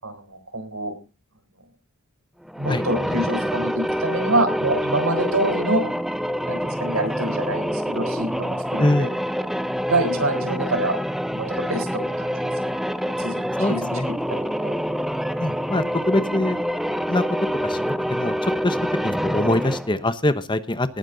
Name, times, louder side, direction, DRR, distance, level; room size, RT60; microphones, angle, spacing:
voice 1, 0.0-0.9 2.6-5.8 6.5-9.1 9.9-11.0 11.3-12.3 13.2-14.0 14.3-14.7, right 2 dB, 70° right, 8 dB, 4.1 m, -26 dB
sound 1, 2.5-20.0, equal, ahead, 0.6 m, -26 dB
voice 2, 8.8-9.1 13.6-14.1 15.4-16.6 17.1-17.2 17.6-18.8 19.0-21.0, left 1 dB, 20° left, 12 dB, 0.9 m, -23 dB
19.0 x 10.5 x 4.0 m, 0.33 s
head